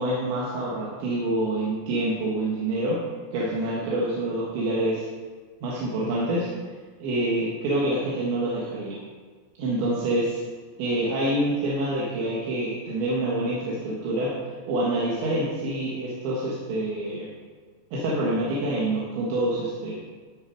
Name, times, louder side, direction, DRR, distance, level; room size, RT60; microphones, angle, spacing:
voice 1, 0.0-3.0 3.3-5.1 5.6-6.5 7.0-9.0 9.6-10.4 10.8-14.4 14.7-17.3 17.9-20.0, right 1 dB, 80° right, -6 dB, 3.8 m, -26 dB
13.5 x 6.0 x 5.0 m, 1.5 s
omnidirectional pair, 5.3 m